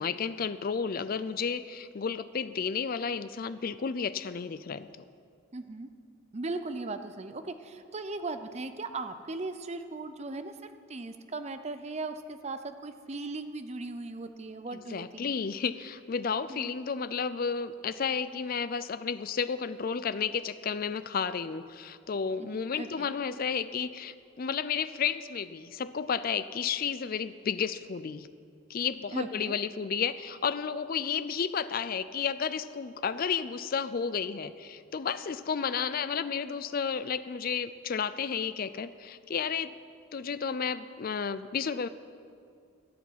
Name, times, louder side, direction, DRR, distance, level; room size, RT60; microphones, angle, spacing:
voice 1, 0.0-4.9 14.7-28.3 28.7-39.7 40.1-41.9, left 6 dB, 45° left, 13 dB, 0.4 m, -32 dB
voice 2, 5.5-5.9 6.3-15.3 16.5-16.8 22.4-23.1 29.1-29.6, right 3 dB, 30° right, 10 dB, 0.6 m, -38 dB
13.0 x 8.6 x 7.4 m, 2.3 s
head